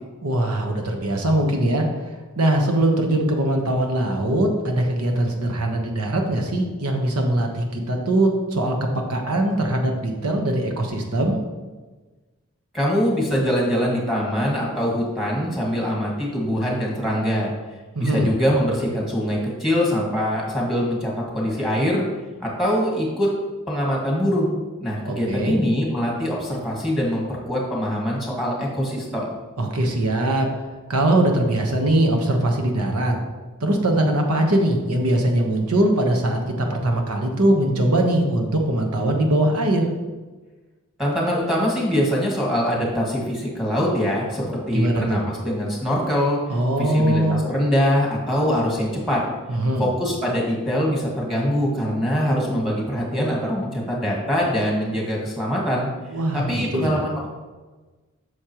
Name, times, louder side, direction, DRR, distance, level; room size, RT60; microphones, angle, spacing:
voice 1, 0.2-1.8 2.4-8.7 9.1-11.4 17.9-18.3 25.0-25.5 29.6-30.5 30.9-33.1 33.6-39.9 44.7-45.2 46.5-47.4 49.5-49.9 56.1-57.0, right 1 dB, 80° right, 2 dB, 1.2 m, -21 dB
voice 2, 12.7-17.5 18.0-22.1 22.4-23.3 23.7-24.6 24.8-29.3 41.0-46.4 46.8-49.2 49.8-55.9 56.3-57.3, equal, ahead, -3 dB, 1.8 m, -23 dB
8.5 x 6.5 x 3.1 m, 1.3 s
head